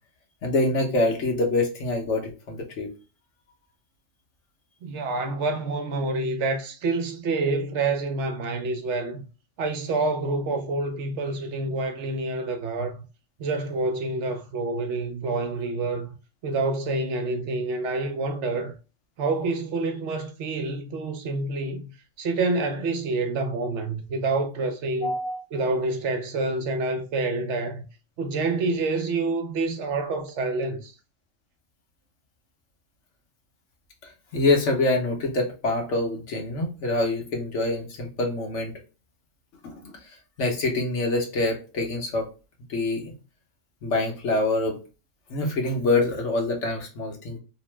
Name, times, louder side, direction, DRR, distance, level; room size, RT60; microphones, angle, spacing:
voice 1, 0.4-2.9 25.0-25.4 34.0-38.7 39.6-42.3 42.7-43.1 43.8-44.8 45.3-47.4, left 2 dB, 65° left, 1.2 m, -25 dB
voice 2, 4.8-9.3 9.6-13.0 13.4-16.1 16.4-18.7 19.2-21.9 22.2-25.1 25.5-27.8 28.2-30.9, right 3 dB, 70° right, 0.9 m, -27 dB
2.9 x 2.1 x 3.1 m
omnidirectional pair, 1.3 m